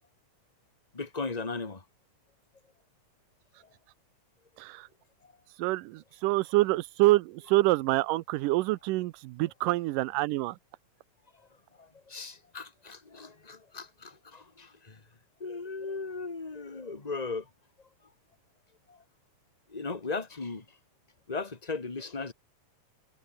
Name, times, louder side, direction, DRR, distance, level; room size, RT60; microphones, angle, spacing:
voice 1, 0.9-1.8 11.8-15.0 15.4-17.4 18.9-19.0 19.7-20.6 21.3-22.3, left 4 dB, 20° left, 1.2 m, -37 dB
voice 2, 4.6-4.9 5.5-10.6, right 18 dB, 90° right, 2.3 m, -26 dB
omnidirectional pair, 3.7 m